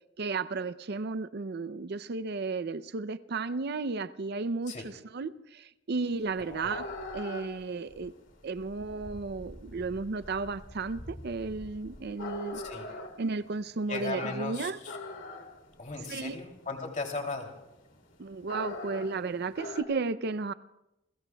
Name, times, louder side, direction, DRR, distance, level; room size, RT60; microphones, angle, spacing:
voice 1, 0.2-8.1 8.4-12.6 13.2-14.8 16.1-16.4 18.2-20.5, right 4 dB, 50° right, 0.5 m, -34 dB
sound 1, 6.1-19.8, left 2 dB, 60° left, 2.7 m, -42 dB
voice 2, 12.5-12.9 13.9-15.0 15.8-17.5, left 3 dB, 40° left, 2.8 m, -37 dB
30.0 x 21.0 x 2.3 m
head